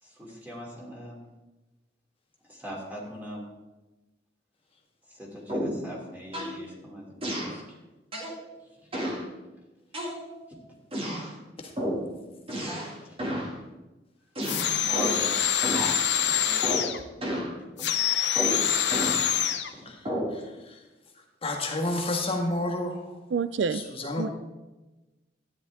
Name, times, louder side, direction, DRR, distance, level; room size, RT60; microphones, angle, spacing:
voice 1, 0.0-1.3 2.5-3.5 5.1-7.8 8.8-8.9 10.5-10.6 12.5-12.7 13.0-13.4 14.8-15.6 16.3-16.8 17.6-17.9 18.9-19.9, equal, 10° right, -3 dB, 2.9 m, -42 dB
sound 1, 5.5-5.9 6.3-6.6 7.2-7.6 8.1-8.4 8.9-9.3 9.9-10.5 10.9-11.3 11.8-12.1 12.5-12.9 13.2-13.5 14.3-15.3 15.6-16.0 16.6-16.9 17.2-17.5 18.3-19.2 20.0-20.4, equal, 35° right, 2.2 m, -31 dB
sound 2, 14.4-17.0 17.8-19.7, left 9 dB, 75° left, 0.9 m, -25 dB
voice 2, 20.3-20.8 21.4-23.0 23.7-24.3, left 2 dB, 35° left, 1 dB, 1.6 m, -30 dB
voice 3, 23.3-23.8 24.2-24.3, right 5 dB, 85° right, 15 dB, 0.4 m, -27 dB
13.0 x 10.0 x 3.6 m, 1.1 s
head